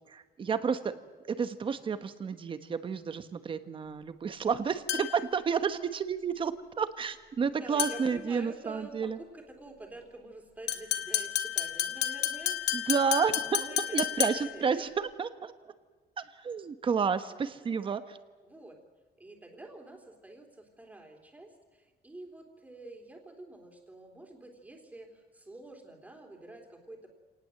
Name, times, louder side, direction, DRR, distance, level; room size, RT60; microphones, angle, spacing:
voice 1, 0.1-0.9 1.3-9.2 12.7-13.6 13.9-15.5 16.2-18.2, right 6 dB, 30° right, 11 dB, 1.2 m, -31 dB
sound 1, 4.9-5.3 7.8-8.2 10.7-14.6, left 11 dB, 75° left, 2.0 m, -31 dB
voice 2, 7.5-12.8 13.1-14.9 18.4-18.8 19.2-27.1, right 2 dB, 10° right, 2 dB, 3.3 m, -48 dB
28.5 x 19.0 x 7.8 m, 1.4 s
cardioid pair, 175°, 17 cm